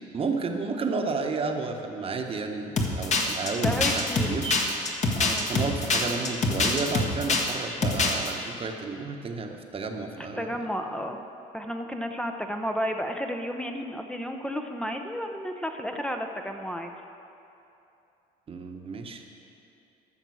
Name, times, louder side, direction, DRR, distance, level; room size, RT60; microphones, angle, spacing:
voice 1, 0.1-4.7 5.5-10.5 18.5-19.2, right 4 dB, 35° right, 4 dB, 1.1 m, -32 dB
sound 1, 2.8-7.5 7.8-8.3, left 3 dB, 40° left, 1.6 m, -24 dB
voice 2, 3.6-4.3 5.2-5.5 10.4-11.2 11.5-16.9, equal, 5° left, 4 dB, 0.7 m, -32 dB
14.0 x 6.6 x 6.3 m, 2.8 s
cardioid pair, 110°, 17 cm